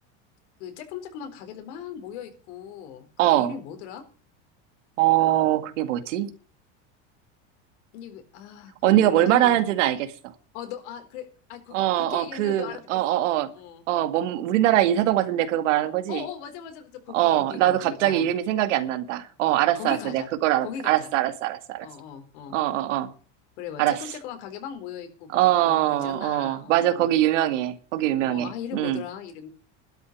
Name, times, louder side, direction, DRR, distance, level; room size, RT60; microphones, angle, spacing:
voice 1, 0.6-3.1 3.4-4.0 7.9-9.6 10.5-12.8 13.1-13.2 13.5-13.8 16.1-18.3 19.4-20.3 20.6-21.1 21.8-22.6 23.6-27.1 28.3-29.5, left 8 dB, 70° left, 6 dB, 4.3 m, -38 dB
voice 2, 3.2-3.5 5.0-6.3 8.8-10.1 11.7-13.5 13.9-16.2 17.1-21.9 22.5-23.1 23.8-24.0 25.3-29.0, right 13 dB, 85° right, 10 dB, 2.0 m, -22 dB
12.5 x 6.7 x 9.9 m, 0.40 s
supercardioid pair, 165°, 36 cm